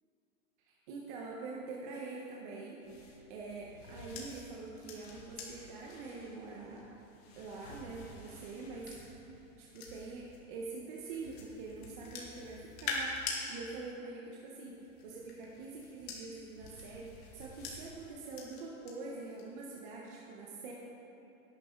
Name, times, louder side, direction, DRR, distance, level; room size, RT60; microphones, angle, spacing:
voice 1, 0.7-6.8 7.3-9.2 9.6-14.7 15.0-20.7, right 3 dB, 35° right, -3 dB, 1.4 m, -45 dB
sound 1, 2.8-10.4 11.0-13.4 14.7-18.9 19.3-19.6, left 4 dB, 50° left, 2.7 m, -46 dB
17.5 x 10.5 x 4.0 m, 3.0 s
supercardioid pair, 165°, 42 cm